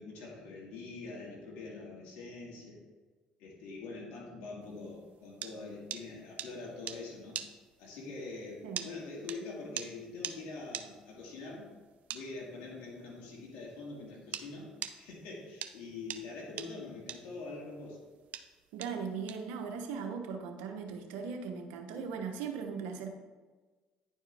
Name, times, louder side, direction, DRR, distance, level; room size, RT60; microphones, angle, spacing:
voice 1, 0.0-2.8 3.4-7.4 7.8-11.7 12.1-14.7 15.0-18.0, left 3 dB, 85° left, -3 dB, 1.9 m, -44 dB
sound 1, 4.8-14.5 14.8-20.0, right 10 dB, 65° right, 0.5 m, -42 dB
voice 2, 18.7-23.1, right 6 dB, 90° right, 4 dB, 0.9 m, -39 dB
9.8 x 4.6 x 3.4 m, 1.3 s
supercardioid pair, 80°, 3 cm